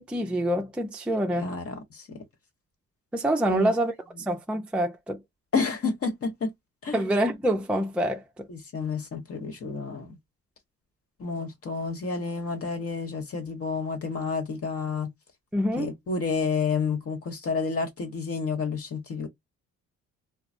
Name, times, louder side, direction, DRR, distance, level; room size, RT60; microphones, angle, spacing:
voice 1, 0.0-1.5 3.1-3.9 4.3-5.2 6.9-8.5 15.5-15.9, right 1 dB, 5° right, 0.5 m, -26 dB
voice 2, 1.4-2.2 3.5-3.7 5.5-6.5 6.8-7.0 8.5-10.2 11.2-15.1 15.8-19.3, left 4 dB, 50° left, 1.1 m, -30 dB
3.1 x 2.0 x 2.5 m
cardioid pair, 90°, 30 cm